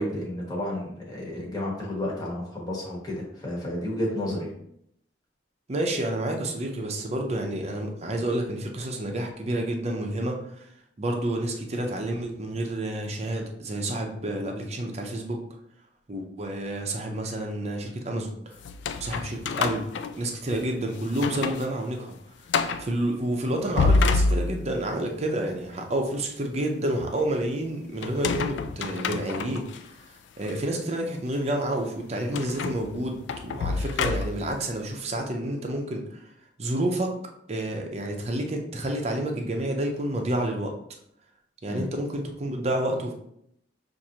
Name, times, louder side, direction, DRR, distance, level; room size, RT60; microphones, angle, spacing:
voice 1, 0.0-4.5 41.7-41.9, left 1 dB, 20° left, -4 dB, 1.1 m, -31 dB
voice 2, 5.7-10.7 11.0-15.4 16.1-18.6 19.0-19.9 20.2-22.1 22.8-29.7 30.4-36.2 36.6-37.1 37.5-40.7 41.6-43.1, right 1 dB, 35° right, 2 dB, 0.6 m, -29 dB
sound 1, 18.6-20.7 21.1-21.7 22.0-22.1 22.5-22.9 23.5-24.9 28.0-29.8 30.4-30.6 32.3-34.6, left 4 dB, 75° left, 0.3 m, -27 dB
6.1 x 2.6 x 2.8 m, 0.74 s
head